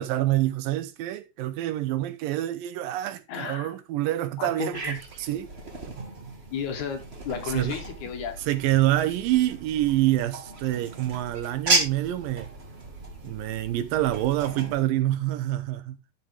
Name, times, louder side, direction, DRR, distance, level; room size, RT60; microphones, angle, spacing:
voice 1, 0.0-5.5 7.5-7.8 8.5-12.5 13.2-16.1, right 14 dB, 80° right, 2.5 m, -26 dB
voice 2, 3.3-3.7 4.4-5.0 6.5-8.4, left 7 dB, 65° left, 2.5 m, -33 dB
sound 1, 4.7-14.8, right 3 dB, 45° right, 0.8 m, -34 dB
12.0 x 6.1 x 3.3 m
omnidirectional pair, 4.1 m